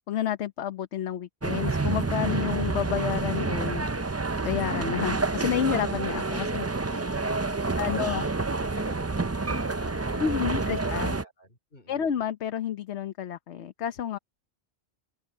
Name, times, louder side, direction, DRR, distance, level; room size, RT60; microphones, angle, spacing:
voice 1, 0.1-3.8 4.4-6.7 7.8-8.2 10.2-11.2 11.9-14.2, left 9 dB, 75° left, 1.1 m, -30 dB
sound 1, 1.4-11.2, right 3 dB, 25° right, 0.3 m, -28 dB
voice 2, 6.9-12.1, equal, 50° left, 3.9 m, -46 dB
open air
omnidirectional pair, 1.2 m